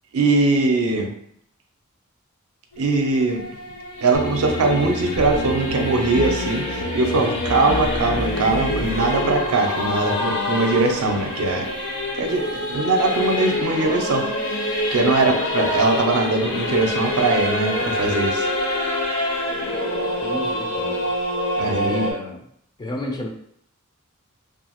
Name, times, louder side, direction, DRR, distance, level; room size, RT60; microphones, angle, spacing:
voice 1, 0.1-1.1 2.8-3.4 4.0-11.7 12.1-14.3 14.9-18.5 21.6-22.1, right 3 dB, 75° right, 3 dB, 0.5 m, -21 dB
Singing / Musical instrument, 2.7-22.1, left 1 dB, 55° left, 0.7 m, -26 dB
sound 1, 4.1-9.5, left 1 dB, 90° left, 0.5 m, -30 dB
voice 2, 20.2-21.1 21.8-22.4 22.8-23.3, left 1 dB, 20° left, 1 dB, 0.3 m, -31 dB
2.6 x 2.4 x 2.9 m, 0.69 s
head